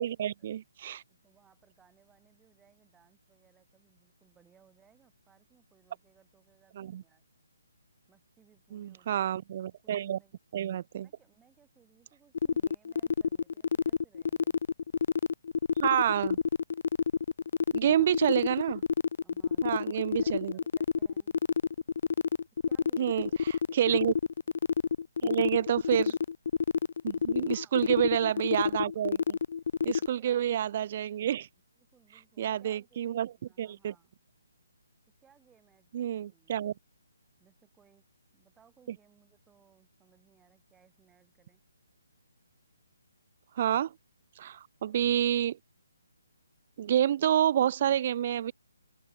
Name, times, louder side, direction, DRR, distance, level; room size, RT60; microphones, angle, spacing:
voice 1, 0.0-1.0 6.8-7.0 8.7-10.2 10.5-11.1 15.8-16.4 17.7-18.8 19.6-20.6 23.0-23.3 23.7-24.1 25.2-26.2 27.0-29.4 29.8-31.5 32.4-33.3 33.6-33.9 35.9-36.7 43.6-43.9 44.4-45.6 46.8-48.5, right 10 dB, 35° right, 0.6 m, -28 dB
voice 2, 1.1-7.2 8.1-9.5 9.8-10.3 11.0-14.6 17.8-18.2 19.2-21.4 22.7-24.1 27.5-28.0 30.2-30.5 31.8-33.0 33.4-34.1 35.2-36.8 37.4-38.0 38.3-41.6, right 7 dB, 10° right, 6.4 m, -65 dB
sound 1, 12.3-30.1, left 6 dB, 45° left, 0.4 m, -28 dB
open air
figure-of-eight pair, 140°, 0 cm